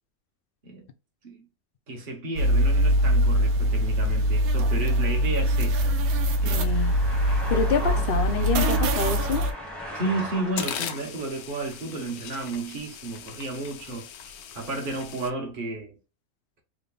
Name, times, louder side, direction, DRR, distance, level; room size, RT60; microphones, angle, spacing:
voice 1, 1.9-5.9 6.4-6.7 9.9-14.1 14.5-16.0, right 2 dB, 40° right, 1.1 m, -32 dB
sound 1, 2.4-9.5, equal, 70° right, 1.1 m, -23 dB
sound 2, 3.8-11.0, equal, ahead, 0.8 m, -38 dB
voice 2, 6.4-7.0 7.5-9.4, left 6 dB, 60° left, 0.6 m, -27 dB
sound 3, 9.7-9.8 10.2-15.3, left 8 dB, 80° left, 1.1 m, -39 dB
3.7 x 2.1 x 3.8 m
omnidirectional pair, 1.6 m